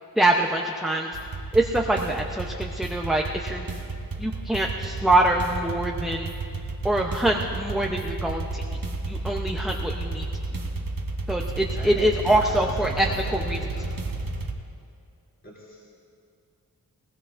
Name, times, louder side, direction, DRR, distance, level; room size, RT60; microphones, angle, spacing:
voice 1, 0.2-1.1 1.5-3.6 4.2-6.3 6.8-8.6 9.1-10.3 11.3-13.6, right 1 dB, ahead, 1 dB, 0.7 m, -24 dB
sound 1, 1.1-14.5, right 3 dB, 65° right, 1.3 m, -32 dB
voice 2, 11.7-13.9 15.4-15.9, equal, 35° left, -8 dB, 3.0 m, -39 dB
20.0 x 20.0 x 2.6 m, 2.5 s
wide cardioid pair, 95°, 36 cm